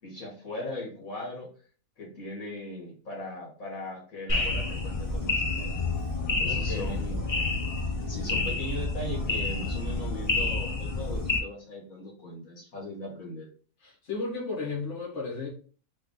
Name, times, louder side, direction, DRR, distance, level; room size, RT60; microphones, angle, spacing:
voice 1, 0.0-1.5 2.0-5.7 6.3-7.3 8.0-13.5, left 1 dB, 75° left, -3 dB, 2.2 m, -39 dB
sound 1, 4.3-11.4, left 3 dB, 30° left, 0.8 m, -29 dB
voice 2, 6.4-7.1 13.8-15.5, left 4 dB, 55° left, -3 dB, 1.9 m, -34 dB
3.6 x 3.4 x 3.8 m, 0.40 s
omnidirectional pair, 1.5 m